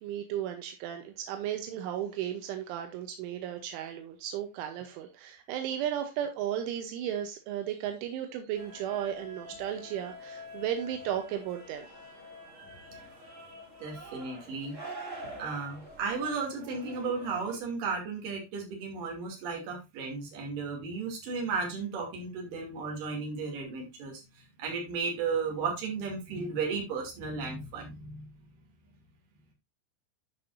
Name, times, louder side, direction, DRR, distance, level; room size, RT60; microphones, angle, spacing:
voice 1, 0.0-11.9 12.5-12.9, right 10 dB, 85° right, 3.1 m, -35 dB
sound 1, 8.5-17.6, equal, 30° right, 1.5 m, -46 dB
voice 2, 13.8-14.8 15.4-28.3, right 4 dB, 50° right, 3.8 m, -34 dB
11.5 x 6.0 x 2.6 m
omnidirectional pair, 5.7 m